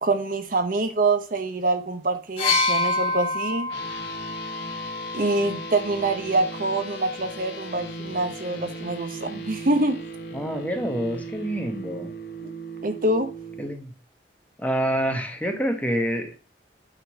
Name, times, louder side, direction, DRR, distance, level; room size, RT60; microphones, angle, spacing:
voice 1, 0.0-3.7 5.1-10.0 12.4-12.5 12.8-13.3, right 2 dB, 50° right, 0.9 m, -25 dB
sound 1, 2.4-6.2 7.2-7.4, left 3 dB, 35° left, 1.7 m, -27 dB
sound 2, 3.7-13.7, right 1 dB, 70° left, 1.3 m, -37 dB
voice 2, 10.3-12.1 13.6-13.9 14.6-16.4, equal, 10° left, 1.1 m, -27 dB
9.0 x 3.8 x 4.8 m
head